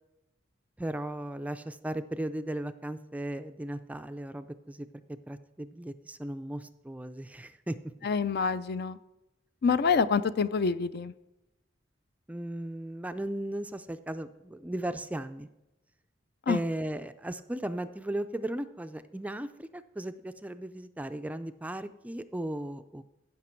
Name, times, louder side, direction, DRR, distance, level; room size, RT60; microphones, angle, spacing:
voice 1, 0.8-4.9 5.3-7.8 12.3-15.5 16.5-23.0, right 1 dB, 10° right, 10 dB, 0.4 m, -36 dB
voice 2, 8.0-9.0 9.6-11.1 16.5-16.6, left 5 dB, 55° left, 14 dB, 0.4 m, -26 dB
15.5 x 5.9 x 4.5 m, 0.93 s
head